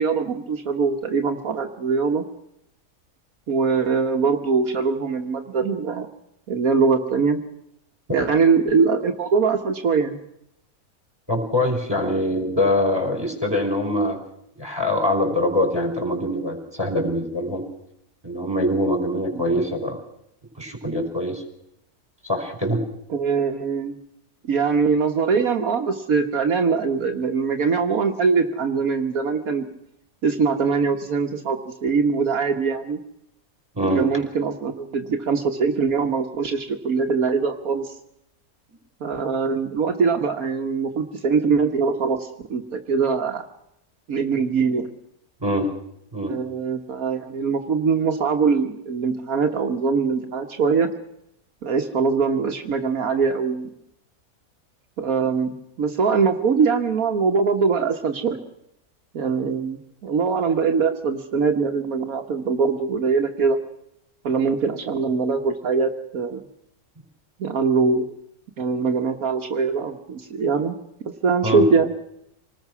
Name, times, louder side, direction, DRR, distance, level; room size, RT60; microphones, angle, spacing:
voice 1, 0.0-2.2 3.5-6.1 6.5-7.4 8.1-10.2 19.3-19.6 23.1-24.0 24.4-29.7 30.2-33.0 33.9-37.9 39.0-43.4 44.1-44.9 46.3-50.9 51.6-53.7 55.0-58.4 59.1-63.6 64.2-66.4 67.4-68.1 68.6-70.8 71.0-71.9, right 5 dB, 70° right, 4 dB, 1.6 m, -22 dB
voice 2, 11.3-14.2 14.6-17.6 18.2-20.0 20.6-21.4 22.2-22.8 33.7-34.0 45.4-45.7 46.1-46.3 71.4-71.6, left 1 dB, 15° right, 4 dB, 5.0 m, -23 dB
26.5 x 19.5 x 6.1 m, 0.78 s
omnidirectional pair, 1.6 m